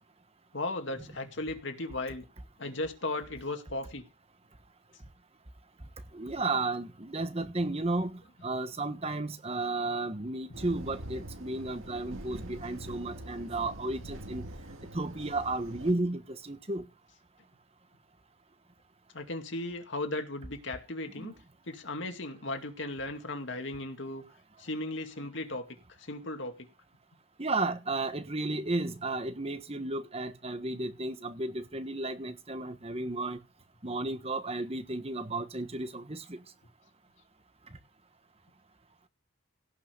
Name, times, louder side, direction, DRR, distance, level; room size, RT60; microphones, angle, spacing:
voice 1, 0.5-2.2 2.6-4.0 19.1-21.3 21.7-24.2 24.6-25.7 26.0-26.7, left 2 dB, 65° left, 2.3 m, -36 dB
voice 2, 6.1-14.4 14.9-16.8 21.2-21.3 27.4-33.4 33.8-36.4, right 2 dB, 30° right, 1.4 m, -33 dB
sound 1, 10.5-15.9, right 1 dB, 90° right, 2.0 m, -44 dB
17.5 x 5.8 x 6.8 m
head